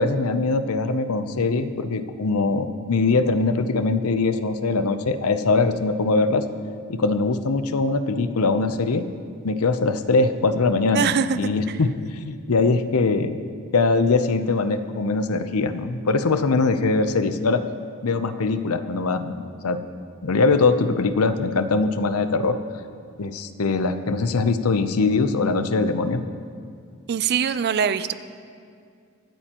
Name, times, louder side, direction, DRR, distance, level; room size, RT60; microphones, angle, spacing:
voice 1, 0.0-6.4 6.9-9.1 9.4-13.4 13.7-17.6 18.0-19.8 20.2-22.6 23.2-26.2, left 3 dB, 70° left, 10 dB, 0.6 m, -22 dB
voice 2, 10.9-11.4 11.7-11.8 27.1-28.1, right 7 dB, 45° right, 14 dB, 0.4 m, -22 dB
23.5 x 9.0 x 3.0 m, 2.3 s
head